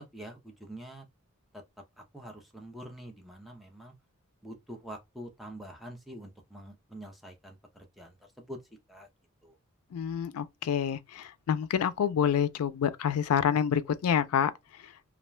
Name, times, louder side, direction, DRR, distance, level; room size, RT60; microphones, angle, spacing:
voice 1, 0.1-1.1 1.5-1.6 2.0-3.9 4.4-8.6 8.9-9.1 9.4-9.6, right 1 dB, ahead, 0.5 m, -46 dB
voice 2, 9.9-14.5, left 8 dB, 85° left, 0.3 m, -27 dB
2.4 x 2.1 x 3.1 m
head